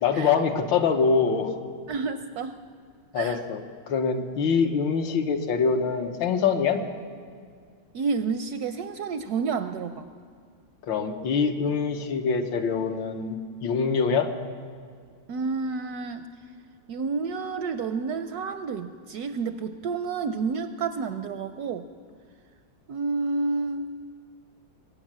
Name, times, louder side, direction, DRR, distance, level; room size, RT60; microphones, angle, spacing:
voice 1, 0.0-1.6 3.1-3.6 3.9-6.8 10.8-13.4 13.6-14.3, left 5 dB, 80° left, 5 dB, 1.7 m, -24 dB
voice 2, 1.9-2.6 3.2-3.4 7.9-10.1 15.3-16.3 16.9-21.9 22.9-23.8, right 4 dB, 75° right, 10 dB, 0.9 m, -30 dB
21.0 x 9.0 x 7.4 m, 2.1 s
omnidirectional pair, 2.0 m